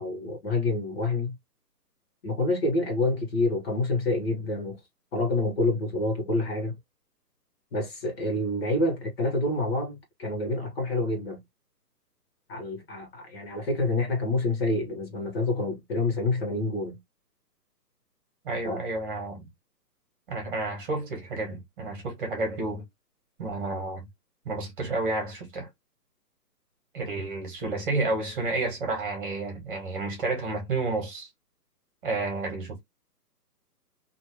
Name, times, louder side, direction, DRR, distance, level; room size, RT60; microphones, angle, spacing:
voice 1, 0.0-1.4 2.2-4.8 5.1-6.7 7.7-11.4 12.5-17.0 18.6-18.8, left 2 dB, 35° left, 1.2 m, -27 dB
voice 2, 18.4-19.4 20.3-22.8 23.4-24.1 24.4-25.7 26.9-31.3 32.0-32.8, right 2 dB, 30° right, 1.6 m, -30 dB
3.0 x 2.7 x 3.0 m
hypercardioid pair, 160°, 49 cm